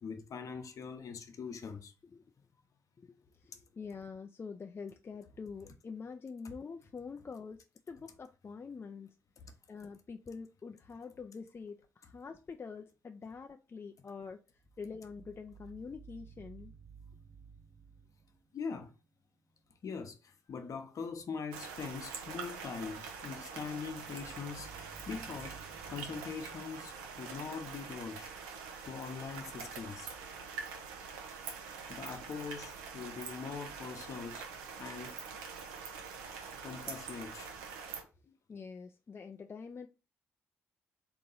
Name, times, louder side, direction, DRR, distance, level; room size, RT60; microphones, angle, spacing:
voice 1, 0.0-1.9 9.4-9.5 18.5-18.9 19.8-25.6 25.9-28.3 28.8-30.1 31.9-34.5 34.8-35.2 36.6-37.5 38.3-38.4, left 5 dB, 55° left, 0.9 m, -42 dB
voice 2, 2.1-2.5 3.0-9.2 9.7-16.7 38.5-39.9, left 5 dB, 35° left, 0.4 m, -46 dB
sound 1, 14.6-18.4 23.6-27.8, right 6 dB, 25° right, 0.4 m, -56 dB
sound 2, 21.5-38.0, right 5 dB, 85° right, 0.7 m, -45 dB
3.7 x 2.9 x 3.9 m
hypercardioid pair, 50°, 7 cm